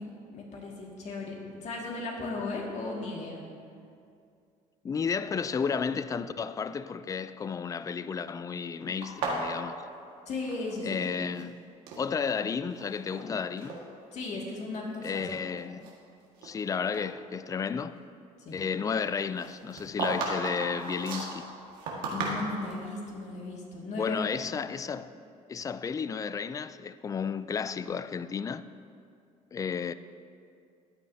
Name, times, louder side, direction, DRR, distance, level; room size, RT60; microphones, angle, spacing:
voice 1, 0.0-3.4 10.3-11.0 14.1-15.3 18.4-18.6 22.1-24.2, left 3 dB, 55° left, 2.1 m, -36 dB
voice 2, 4.8-9.8 10.8-11.6 12.0-13.8 15.0-15.9 16.4-17.9 18.5-21.5 23.9-25.1 25.5-28.6 29.5-29.9, left 6 dB, 25° left, 0.3 m, -32 dB
sound 1, 9.0-11.0 11.3-12.0 12.7-13.2 13.6-13.8 14.4-14.5 15.1-16.6 16.9-17.1 19.4-22.8, right 3 dB, 85° right, 1.7 m, -35 dB
13.5 x 9.1 x 2.8 m
cardioid pair, 100°, 14 cm